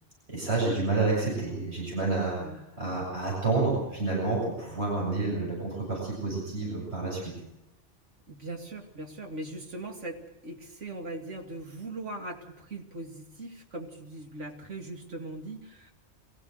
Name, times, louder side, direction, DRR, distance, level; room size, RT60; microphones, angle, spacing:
voice 1, 0.3-7.3, right 3 dB, 65° right, -4 dB, 8.2 m, -29 dB
voice 2, 8.3-15.9, right 2 dB, 85° right, 3 dB, 2.8 m, -40 dB
23.0 x 15.5 x 7.8 m, 0.87 s
omnidirectional pair, 1.2 m